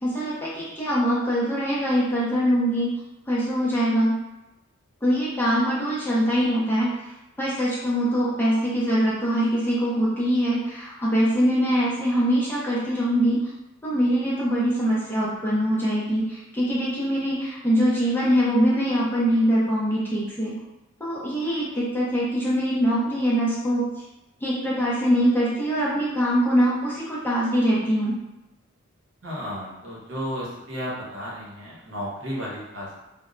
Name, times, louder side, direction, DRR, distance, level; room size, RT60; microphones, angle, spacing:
voice 1, 0.0-2.9 3.3-4.2 5.0-6.9 7.4-13.5 13.8-20.6 21.0-23.9 24.4-28.2, equal, 10° left, -7 dB, 0.5 m, -23 dB
voice 2, 29.2-32.9, equal, 60° right, -5 dB, 0.8 m, -33 dB
2.1 x 2.0 x 3.6 m, 0.92 s
head